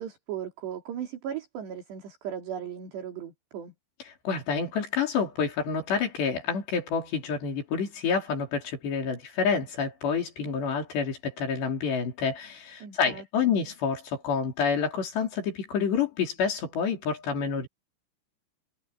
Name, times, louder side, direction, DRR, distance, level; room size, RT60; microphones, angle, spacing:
voice 1, 0.0-3.7 12.8-13.5, right 9 dB, 60° right, 5.1 m, -37 dB
voice 2, 4.2-17.7, left 6 dB, 55° left, 6.4 m, -28 dB
omnidirectional pair, 5.9 m